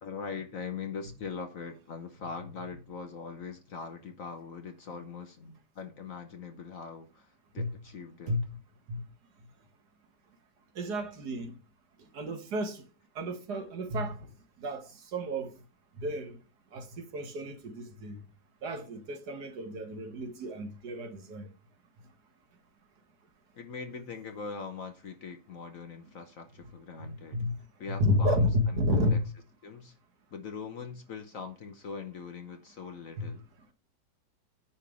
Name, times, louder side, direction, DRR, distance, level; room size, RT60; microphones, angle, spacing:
voice 1, 0.0-8.4 23.5-27.5 27.8-28.5 28.9-29.2 29.6-30.0 30.3-33.4, left 5 dB, 55° left, 1.1 m, -41 dB
voice 2, 10.8-11.5 12.1-12.8 13.2-14.2 14.6-14.8 15.1-15.5 16.0-16.3 16.7-18.2 18.6-21.5 27.3-27.5 27.9-29.2 33.2-33.3, left 1 dB, 60° right, 1.8 m, -31 dB
9.9 x 3.4 x 6.8 m
omnidirectional pair, 2.0 m